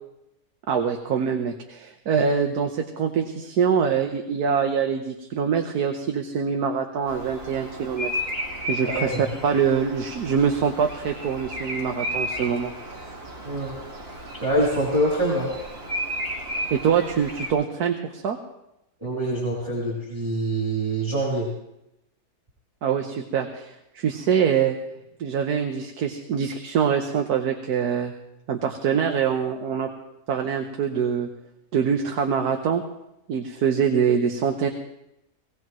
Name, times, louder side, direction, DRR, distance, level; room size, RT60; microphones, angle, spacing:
voice 1, 0.7-8.1 8.7-9.2 9.4-12.7 16.7-18.4 22.8-24.7 25.2-28.1 28.5-29.9 30.3-31.3 31.7-32.8 33.3-34.7, right 7 dB, 80° right, 4 dB, 1.5 m, -24 dB
Bird vocalization bird call bird song, 7.1-17.5, equal, 40° right, 2.0 m, -33 dB
voice 2, 8.9-9.2 13.4-13.8 14.1-14.2 14.4-15.5 19.0-21.5, right 1 dB, 15° right, -8 dB, 3.5 m, -25 dB
19.0 x 18.5 x 3.1 m, 0.86 s
omnidirectional pair, 1.6 m